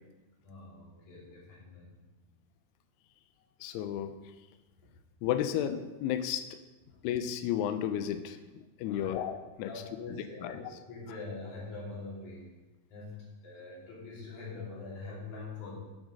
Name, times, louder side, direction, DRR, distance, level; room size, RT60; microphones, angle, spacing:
voice 1, 0.4-2.0 6.9-7.0 8.9-9.2 9.7-12.5 12.9-15.8, left 3 dB, 50° left, -6 dB, 3.9 m, -44 dB
voice 2, 3.6-4.1 5.2-6.6 7.0-8.4 8.8-9.7 10.4-10.6, left 10 dB, 85° left, 9 dB, 2.5 m, -32 dB
8.1 x 7.4 x 5.3 m, 1.2 s
omnidirectional pair, 4.9 m